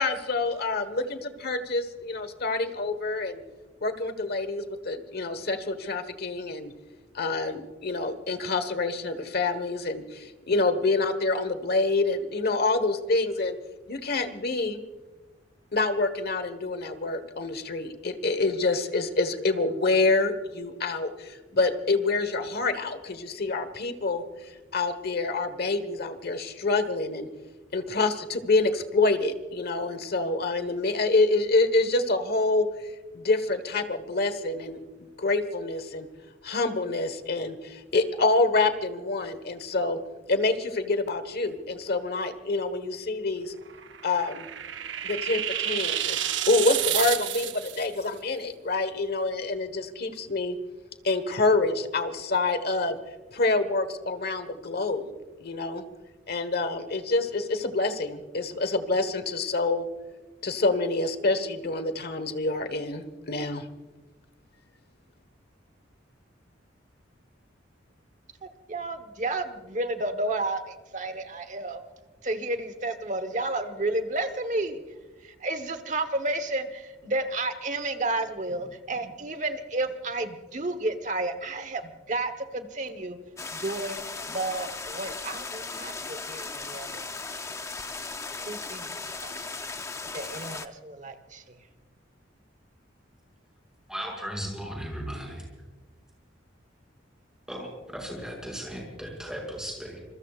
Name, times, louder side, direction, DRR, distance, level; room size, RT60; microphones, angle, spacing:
voice 1, 0.0-3.4 3.8-6.7 7.1-13.6 13.9-14.8 15.7-24.2 24.7-27.3 27.7-32.7 33.1-34.8 35.2-36.1 36.4-40.0 40.3-43.5 44.0-44.5 45.0-46.2 46.5-50.6 51.0-53.0 53.3-55.1 55.4-55.8 56.3-59.8 60.4-63.6, left 3 dB, 55° left, 11 dB, 1.3 m, -27 dB
sound 1, 43.7-47.9, right 11 dB, 70° right, 0.7 m, -30 dB
voice 2, 68.4-71.8 72.2-74.8 75.2-83.2 83.5-87.1 88.4-89.0 89.2-89.4 90.1-91.6, right 2 dB, 40° right, 10 dB, 1.2 m, -31 dB
sound 2, 83.4-90.7, left 3 dB, 15° left, 0.6 m, -37 dB
voice 3, 93.9-95.4 97.5-100.0, equal, 5° right, -1 dB, 6.0 m, -36 dB
27.0 x 22.0 x 2.5 m, 1.2 s
head